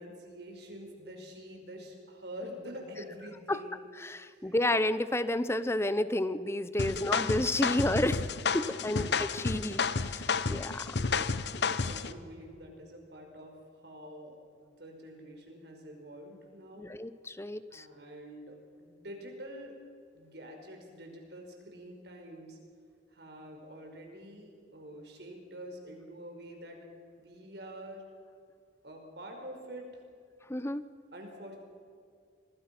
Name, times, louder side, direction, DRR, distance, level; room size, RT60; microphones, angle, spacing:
voice 1, 0.0-3.7 4.2-4.7 6.8-7.2 8.6-9.1 10.9-14.4 14.6-16.9 17.7-19.7 20.1-22.6 23.1-26.8 27.2-28.0 28.8-29.9 31.1-31.6, equal, 60° right, 2 dB, 5.0 m, -47 dB
voice 2, 4.0-8.3 8.5-9.0 9.4-11.0 16.8-17.9 30.5-30.8, left 1 dB, 15° left, 14 dB, 0.8 m, -31 dB
sound 1, 6.8-12.1, left 5 dB, 65° left, 0.9 m, -31 dB
26.5 x 20.0 x 6.0 m, 2.3 s
head